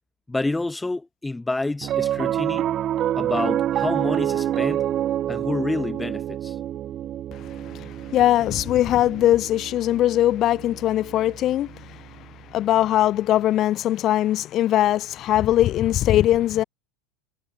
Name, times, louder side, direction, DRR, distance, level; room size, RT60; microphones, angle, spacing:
voice 1, 0.3-2.7 3.2-4.8 5.3-6.5, left 2 dB, 5° left, 1.7 m, -28 dB
Piano, 1.8-12.3, right 11 dB, 35° right, 1.5 m, -28 dB
voice 2, 7.7-12.0 12.5-16.6, left 13 dB, 40° left, 0.5 m, -21 dB
supercardioid pair, 135°, 0 cm